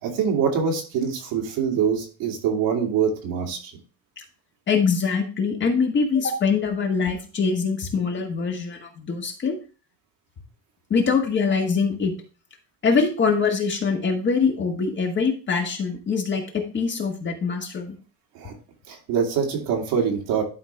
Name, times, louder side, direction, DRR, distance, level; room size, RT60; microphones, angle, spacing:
voice 1, 0.0-3.7 18.3-18.5 18.9-20.4, right 6 dB, 85° right, 0 dB, 2.6 m, -24 dB
voice 2, 4.7-9.6 10.9-12.1 12.8-18.0, left 5 dB, 35° left, 2 dB, 1.7 m, -23 dB
11.5 x 4.6 x 3.4 m, 0.37 s
cardioid pair, 140°, 35 cm